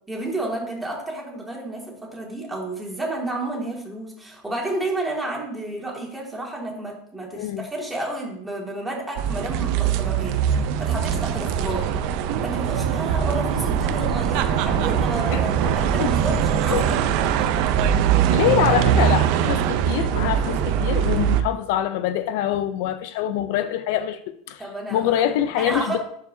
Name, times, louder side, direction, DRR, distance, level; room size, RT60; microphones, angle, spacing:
voice 1, 0.1-11.9 12.4-17.0 17.4-17.6 24.6-25.3 25.6-26.0, right 2 dB, 10° right, 2.2 m, -31 dB
voice 2, 7.3-7.7 15.3-16.1 16.7-16.8 18.3-24.6 24.9-26.0, left 11 dB, 65° left, 0.4 m, -25 dB
sound 1, 9.2-21.4, right 9 dB, 60° right, 0.6 m, -22 dB
11.5 x 4.7 x 2.7 m
supercardioid pair, 130°, 0 cm